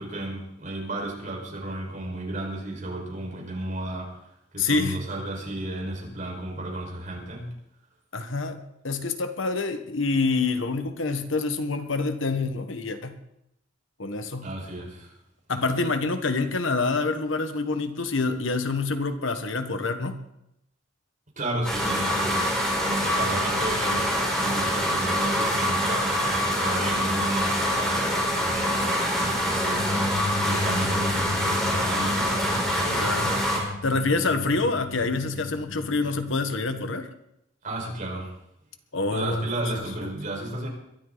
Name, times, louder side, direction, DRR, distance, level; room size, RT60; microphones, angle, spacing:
voice 1, 0.0-4.2 4.5-7.5 14.4-15.1 21.4-33.1 37.6-38.3 39.1-40.7, right 1 dB, 40° right, -1 dB, 5.1 m, -33 dB
voice 2, 4.6-5.0 8.1-13.2 14.0-14.5 15.5-20.2 33.0-33.3 33.8-37.1 38.9-39.5, left 3 dB, 75° left, 8 dB, 1.4 m, -27 dB
sound 1, 21.6-33.6, equal, 5° left, 4.5 m, -25 dB
sound 2, 29.7-37.0, left 2 dB, 55° left, 1.4 m, -35 dB
22.0 x 13.0 x 4.0 m, 0.80 s
head